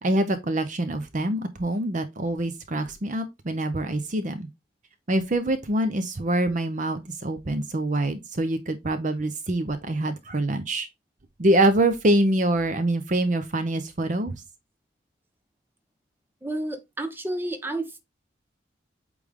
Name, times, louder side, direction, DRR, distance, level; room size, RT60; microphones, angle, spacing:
voice 1, 0.0-4.5 5.1-10.9 11.4-14.4, right 1 dB, 45° right, 0.7 m, -25 dB
voice 2, 16.4-18.0, right 1 dB, 10° right, 0.9 m, -31 dB
8.4 x 3.4 x 3.6 m
head